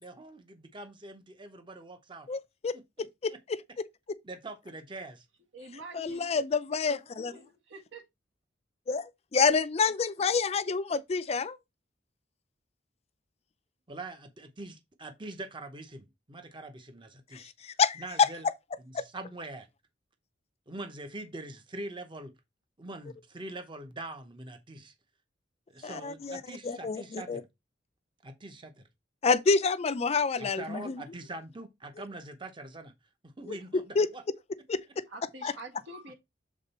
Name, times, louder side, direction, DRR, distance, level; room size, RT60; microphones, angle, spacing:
voice 1, 0.0-2.3 2.7-3.4 4.2-5.3 13.9-17.5 18.0-18.5 18.8-19.7 20.7-22.3 22.8-24.9 25.7-27.5 28.2-28.8 30.4-32.9 33.2-34.2, right 2 dB, 25° right, 0.8 m, -43 dB
voice 2, 2.3-3.3 5.9-7.3 8.9-11.6 17.3-18.3 18.9-19.0 25.8-27.4 29.2-30.9 33.5-33.6 34.0-34.1 34.7-35.0 35.4-35.5, left 5 dB, 35° left, 0.4 m, -28 dB
voice 3, 5.5-6.3 7.2-8.0 35.1-36.1, right 2 dB, 75° right, 1.9 m, -46 dB
7.3 x 3.9 x 4.2 m
head